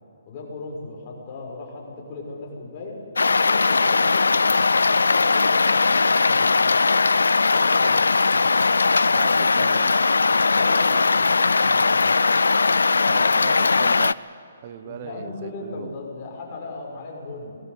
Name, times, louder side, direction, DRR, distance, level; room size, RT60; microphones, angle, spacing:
voice 1, 0.3-4.3 4.7-6.8 7.5-9.0 10.5-12.2 14.8-17.6, left 3 dB, 35° left, -2 dB, 6.3 m, -38 dB
sound 1, 3.2-14.1, left 4 dB, 85° left, 0.4 m, -19 dB
voice 2, 9.1-10.0 12.9-14.2 14.6-15.9, right 10 dB, 40° right, 14 dB, 1.0 m, -38 dB
19.0 x 15.0 x 9.8 m, 2.7 s
hypercardioid pair, 145°, 0 cm